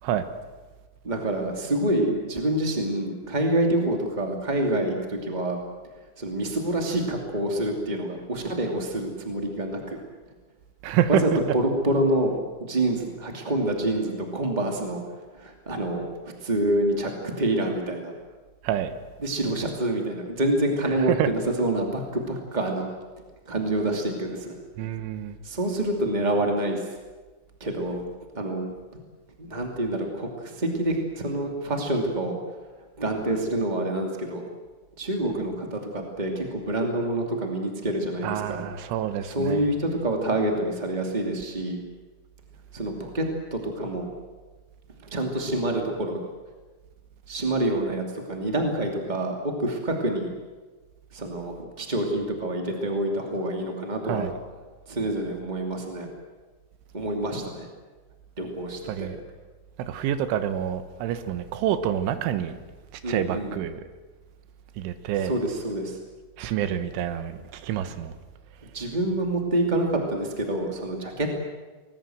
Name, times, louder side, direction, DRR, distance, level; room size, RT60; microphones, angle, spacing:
voice 1, 1.0-5.6 6.2-10.0 11.1-12.3 12.6-15.0 15.3-18.1 19.2-22.9 23.4-24.5 24.8-24.9 25.4-26.9 27.6-28.0 28.3-28.7 29.4-32.3 33.0-34.4 35.0-38.6 39.2-41.8 42.7-43.2 43.5-44.1 45.1-46.2 47.3-50.3 51.1-54.3 54.9-56.1 56.9-57.7 58.4-59.1 63.0-63.5 65.2-66.0 68.7-71.4, right 1 dB, 25° right, 0.9 m, -27 dB
voice 2, 10.8-11.2 18.6-18.9 21.0-21.3 24.8-25.4 38.2-39.6 54.1-54.3 58.9-59.2 59.8-62.6 62.9-63.9 64.8-65.3 66.4-68.2, right 10 dB, 75° right, 3.6 m, -27 dB
26.5 x 20.5 x 7.9 m
omnidirectional pair, 5.7 m